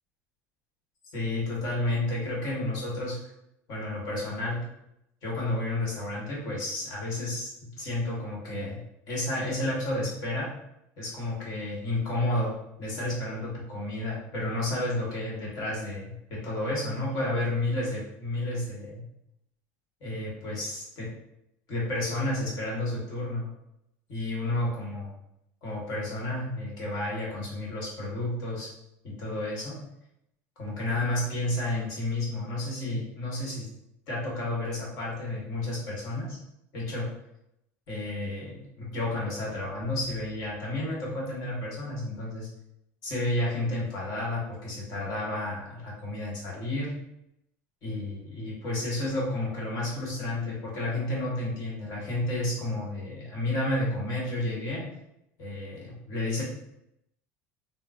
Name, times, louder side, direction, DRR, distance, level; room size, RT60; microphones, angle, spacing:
voice 1, 1.1-3.2 3.7-4.6 5.2-7.5 7.8-8.8 9.1-10.5 11.0-12.5 12.8-19.0 20.0-21.1 21.7-23.4 24.1-25.1 25.6-28.7 29.0-29.7 30.6-33.7 34.1-36.4 36.7-37.1 37.9-42.5 43.0-46.9 47.8-54.8 55.4-56.4, left 1 dB, 60° left, -4 dB, 1.3 m, -31 dB
3.7 x 2.1 x 2.5 m, 0.82 s
supercardioid pair, 110°, 7 cm